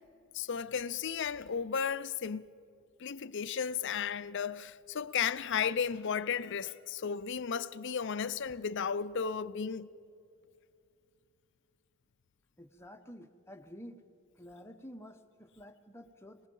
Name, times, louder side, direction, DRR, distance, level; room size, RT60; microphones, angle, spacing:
voice 1, 0.3-2.5 3.0-9.9, left 7 dB, 55° left, 0.5 m, -34 dB
voice 2, 12.6-14.0 14.4-16.4, equal, 10° left, 0.9 m, -50 dB
24.5 x 19.5 x 5.4 m
head